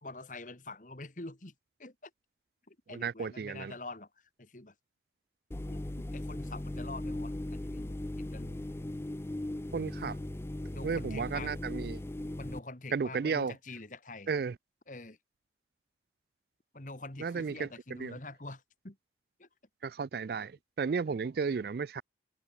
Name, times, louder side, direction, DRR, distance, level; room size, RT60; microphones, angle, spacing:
voice 1, 0.0-1.5 1.8-2.1 2.7-4.7 5.6-8.6 10.7-11.5 12.4-14.3 14.9-15.2 16.7-19.0 19.4-19.5 21.1-21.2, left 2 dB, 45° left, 2.0 m, -46 dB
voice 2, 2.9-3.7 9.7-10.2 10.8-12.0 12.9-13.5 14.3-14.6 17.2-17.7 18.0-18.2 19.8-22.0, right 5 dB, 55° right, 0.4 m, -33 dB
sound 1, 5.5-12.6, left 1 dB, 15° left, 0.4 m, -38 dB
head